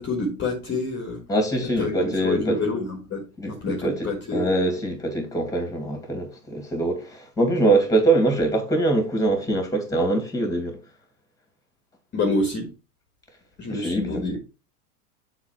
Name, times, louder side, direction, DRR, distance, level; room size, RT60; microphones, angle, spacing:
voice 1, 0.0-1.2 1.6-4.6 12.1-12.7 13.6-14.4, left 2 dB, 25° left, 1.7 m, -27 dB
voice 2, 1.3-2.6 3.4-10.8 13.7-14.1, right 2 dB, 5° left, 2.4 m, -23 dB
7.3 x 4.2 x 4.4 m
hypercardioid pair, 115°, 47 cm